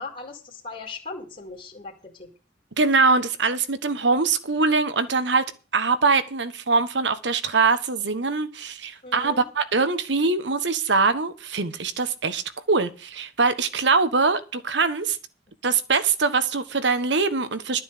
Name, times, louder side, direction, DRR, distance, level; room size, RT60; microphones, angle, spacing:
voice 1, 0.0-2.3 9.0-9.4, left 3 dB, 40° left, 2.5 m, -38 dB
voice 2, 2.8-5.4 5.7-12.4 12.7-15.2 15.6-17.8, right 4 dB, 70° right, 1.3 m, -23 dB
12.0 x 7.4 x 6.7 m
head